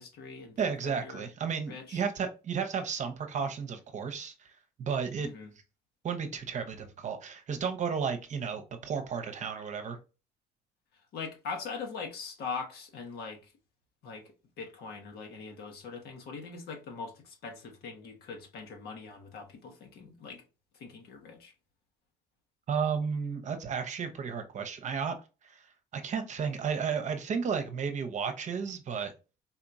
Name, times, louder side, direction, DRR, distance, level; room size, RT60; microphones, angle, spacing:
voice 1, 0.0-1.3 1.7-2.0 5.2-5.5 11.1-13.5 14.0-20.4 20.7-21.5, left 5 dB, 70° left, 1.4 m, -42 dB
voice 2, 0.6-4.5 4.8-5.3 6.0-10.0 22.7-25.1 25.4-25.6 25.9-29.1, right 6 dB, 45° right, 0.9 m, -33 dB
4.2 x 2.9 x 2.6 m
cardioid pair, 110°, 17 cm